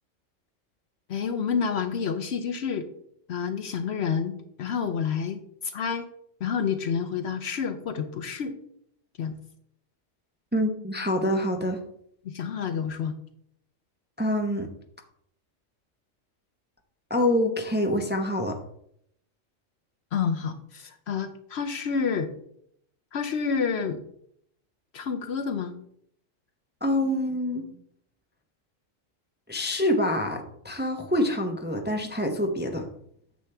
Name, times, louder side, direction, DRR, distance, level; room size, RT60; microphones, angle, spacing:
voice 1, 1.1-2.9 3.3-6.1 6.4-8.6 9.2-9.3 12.2-13.1 20.1-22.3 23.1-24.0 24.9-25.7, left 6 dB, 60° left, 8 dB, 0.8 m, -29 dB
voice 2, 10.5-11.8 14.2-14.7 17.1-18.6 26.8-27.7 29.5-32.9, left 1 dB, 10° right, 4 dB, 0.7 m, -26 dB
9.1 x 7.3 x 3.4 m, 0.71 s
omnidirectional pair, 1.4 m